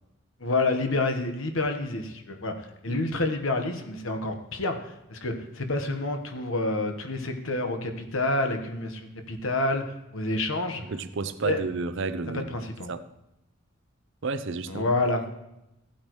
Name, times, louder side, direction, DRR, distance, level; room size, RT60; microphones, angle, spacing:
voice 1, 0.4-10.8 11.4-11.6 12.5-12.9 14.7-15.2, left 2 dB, 70° left, 5 dB, 1.3 m, -28 dB
voice 2, 10.9-12.5 12.9-13.0 14.2-14.8, right 4 dB, 65° right, 11 dB, 0.6 m, -31 dB
15.5 x 8.6 x 3.1 m, 0.90 s
head